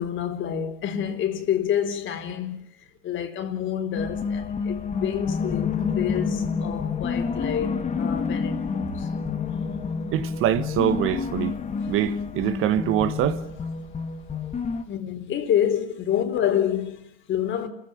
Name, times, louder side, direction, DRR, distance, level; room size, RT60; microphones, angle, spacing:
voice 1, 0.0-2.6 3.0-7.7 8.0-9.1 14.9-17.7, left 9 dB, 40° left, 3.5 m, -28 dB
sound 1, 3.9-14.8, left 5 dB, 25° left, 2.0 m, -28 dB
voice 2, 10.1-11.6 11.9-13.4, right 11 dB, 45° right, 1.5 m, -24 dB
29.0 x 16.0 x 8.7 m
supercardioid pair, 115°, 31 cm